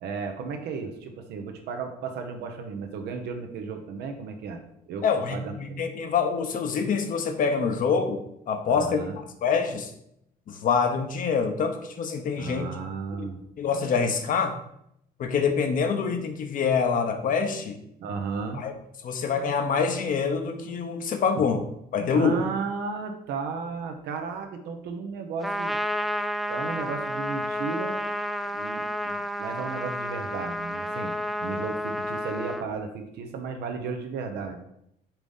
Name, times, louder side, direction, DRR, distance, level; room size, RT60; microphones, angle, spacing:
voice 1, 0.0-5.0 5.3-5.9 8.7-9.2 12.4-13.4 18.0-18.6 22.1-25.8 26.5-28.0 28.5-31.1 31.4-34.6, right 5 dB, 80° right, 5 dB, 1.0 m, -34 dB
voice 2, 5.0-8.2 8.5-9.9 10.5-12.7 13.1-13.3 13.6-14.5 15.2-17.8 18.5-18.7 19.0-21.6 21.9-22.3, left 5 dB, 55° left, 6 dB, 0.9 m, -26 dB
Trumpet, 25.4-32.7, equal, ahead, 0.3 m, -30 dB
5.9 x 3.5 x 5.5 m, 0.76 s
cardioid pair, 110°, 17 cm